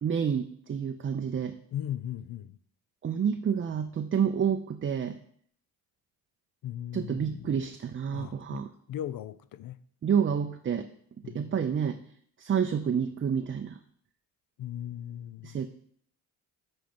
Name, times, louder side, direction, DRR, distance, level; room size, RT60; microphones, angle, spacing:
voice 1, 0.0-1.6 3.0-5.2 6.9-8.7 10.0-10.9 11.2-12.0 12.4-13.8 15.4-15.7, right 7 dB, 30° right, 0.5 m, -29 dB
voice 2, 1.7-2.6 6.6-7.5 8.1-9.8 11.2-11.6 14.6-15.6, left 11 dB, 55° left, 0.6 m, -38 dB
7.6 x 4.5 x 5.4 m
supercardioid pair, 60°, 43 cm